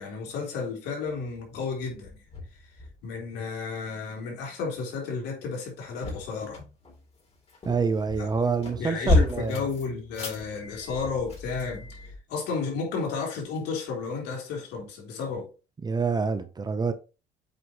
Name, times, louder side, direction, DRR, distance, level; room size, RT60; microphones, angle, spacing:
voice 1, 0.0-2.2 3.0-6.6 8.2-8.3 8.8-15.5, left 5 dB, 80° left, 3.2 m, -33 dB
sound 1, 1.1-1.4 1.9-3.1 5.7-12.2, left 3 dB, 35° left, 3.7 m, -32 dB
voice 2, 7.7-9.6 15.8-16.9, right 5 dB, 25° right, 0.8 m, -26 dB
8.0 x 5.0 x 3.0 m
cardioid pair, 110°, 17 cm